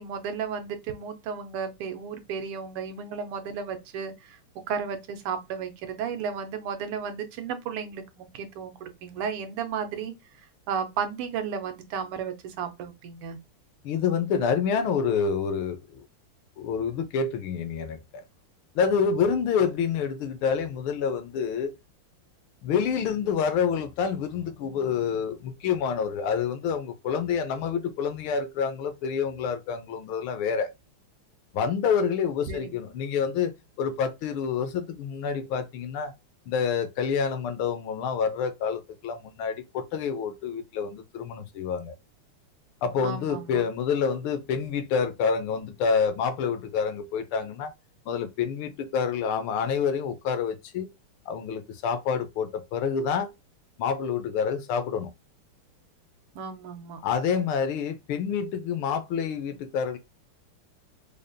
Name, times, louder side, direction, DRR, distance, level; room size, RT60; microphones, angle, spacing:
voice 1, 0.0-4.4 4.7-10.1 10.7-13.4 32.5-32.7 43.0-43.6 56.3-57.0, right 6 dB, 85° right, 1.7 m, -33 dB
voice 2, 13.8-16.1 16.6-18.2 18.7-21.7 22.6-30.7 31.5-33.5 33.8-36.1 36.5-41.9 42.8-47.7 48.1-50.9 51.3-53.3 53.8-55.1 57.0-60.0, left 6 dB, 75° left, 1.4 m, -27 dB
5.0 x 2.3 x 2.5 m
omnidirectional pair, 2.4 m